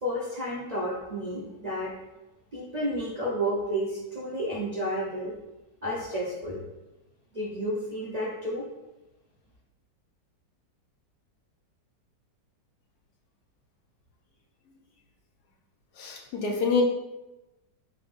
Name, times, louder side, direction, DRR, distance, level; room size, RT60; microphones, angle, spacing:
voice 1, 0.0-1.9 2.5-5.3 5.8-6.6 7.3-8.6, equal, 75° right, -5 dB, 0.3 m, -31 dB
voice 2, 16.0-16.8, left 5 dB, 65° left, 0 dB, 1.2 m, -26 dB
5.4 x 3.6 x 2.5 m, 1.0 s
omnidirectional pair, 1.9 m